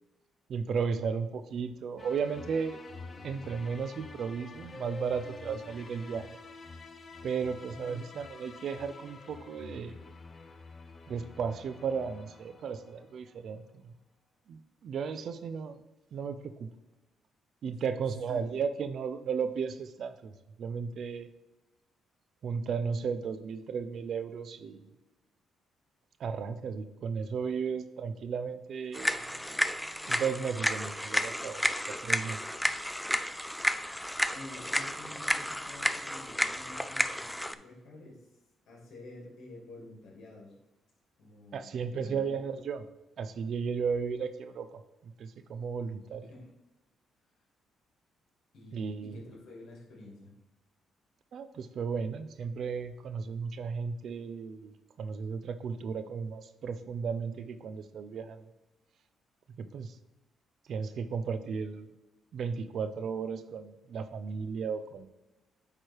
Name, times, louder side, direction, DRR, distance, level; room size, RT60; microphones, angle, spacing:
voice 1, 0.5-2.8 3.2-6.4 7.2-10.0 11.1-13.9 14.5-15.8 16.1-16.7 17.6-20.3 20.6-21.3 22.4-24.9 26.2-29.4 30.1-31.7 32.0-32.4 41.5-42.8 43.2-46.3 48.7-49.2 51.3-58.4 59.6-59.9 60.7-61.9 62.3-65.1, right 6 dB, 65° right, 11 dB, 0.5 m, -35 dB
sound 1, 2.0-13.3, left 3 dB, 35° left, 0.8 m, -48 dB
voice 2, 7.6-8.1 17.7-17.8 18.3-18.6 34.3-38.3 38.7-40.5 41.2-42.4 46.2-46.5 48.5-50.3, left 2 dB, 70° left, -2 dB, 2.5 m, -49 dB
sound 2, 28.9-37.5, equal, ahead, 0.3 m, -32 dB
8.6 x 3.2 x 4.7 m, 1.0 s
cardioid pair, 90°, 0 cm